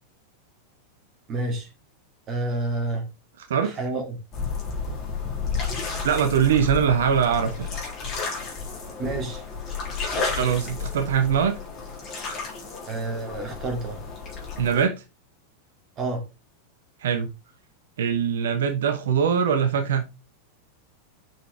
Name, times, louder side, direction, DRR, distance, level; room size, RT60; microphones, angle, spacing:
voice 1, 1.3-1.7 2.3-3.1 3.6-4.2 9.0-9.4 12.9-14.0 16.0-16.2, right 2 dB, 30° right, 2.6 m, -29 dB
sound 1, 4.3-14.8, left 4 dB, 30° left, 3.5 m, -32 dB
voice 2, 6.0-7.7 10.3-11.6 14.6-14.9 17.0-17.3 18.0-20.1, right 7 dB, 60° right, 1.0 m, -22 dB
6.3 x 6.1 x 3.4 m
figure-of-eight pair, 90°, 0 cm